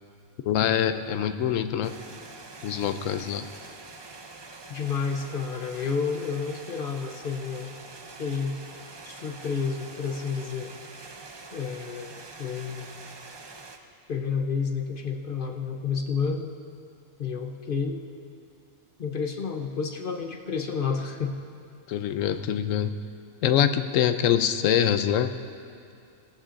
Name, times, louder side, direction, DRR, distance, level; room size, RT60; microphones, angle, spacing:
voice 1, 0.4-2.0 2.6-3.5 21.9-22.9 23.4-25.4, left 9 dB, 80° left, 9 dB, 1.0 m, -24 dB
sound 1, 1.8-13.8, right 3 dB, 35° right, 0.4 m, -45 dB
voice 2, 4.7-7.7 8.2-8.6 9.0-10.7 11.5-12.9 14.1-16.5 17.2-18.0 19.0-21.4, left 5 dB, 50° left, 4 dB, 0.8 m, -30 dB
17.5 x 14.5 x 2.5 m, 2.4 s
omnidirectional pair, 1.3 m